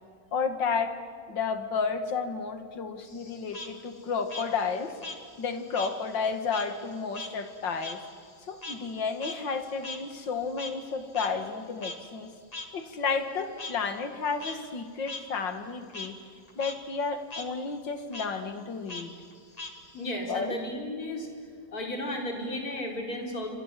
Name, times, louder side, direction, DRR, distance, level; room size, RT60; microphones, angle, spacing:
voice 1, 0.3-1.0 1.3-4.9 5.4-8.0 8.5-12.3 12.7-16.2 16.6-19.1 20.3-20.6, left 5 dB, 80° left, 9 dB, 2.6 m, -32 dB
Frog, 3.0-6.0 6.3-10.9 11.1-11.3 11.8-12.0 12.5-12.7 13.6-13.7 14.2-14.6 15.1-15.2 15.6-16.1 16.5-16.7 17.0-17.5 18.1-18.3 18.9-20.1, left 2 dB, 20° left, 2.0 m, -40 dB
voice 2, 19.9-21.3 21.7-23.5, left 1 dB, 55° left, 2 dB, 4.8 m, -34 dB
29.0 x 25.0 x 7.6 m, 2.2 s
omnidirectional pair, 2.0 m